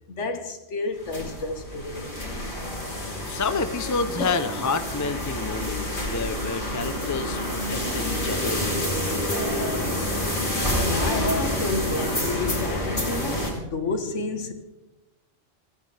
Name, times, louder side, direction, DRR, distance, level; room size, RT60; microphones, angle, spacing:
voice 1, 0.1-2.1 4.2-4.4 10.7-14.5, left 3 dB, 65° left, 1.7 m, -30 dB
sound 1, 1.0-13.5, left 1 dB, 40° left, 3.5 m, -28 dB
voice 2, 3.2-9.9, left 4 dB, 20° left, 0.5 m, -30 dB
29.0 x 9.7 x 3.4 m
omnidirectional pair, 1.3 m